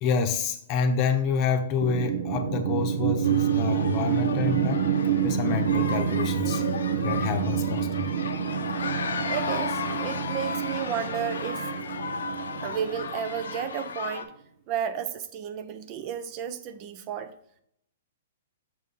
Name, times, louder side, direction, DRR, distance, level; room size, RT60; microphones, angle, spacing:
voice 1, 0.0-4.9 5.2-6.6 7.0-8.1, left 5 dB, 35° left, 6 dB, 0.8 m, -28 dB
sound 1, 1.8-14.0, right 8 dB, 75° right, 0.7 m, -28 dB
sound 2, 3.2-14.2, left 5 dB, 80° left, 0.6 m, -35 dB
voice 2, 9.3-11.7 12.6-14.3 14.7-17.3, right 8 dB, 35° right, 11 dB, 0.5 m, -32 dB
6.2 x 4.1 x 3.7 m, 0.68 s
hypercardioid pair, 130°, 0 cm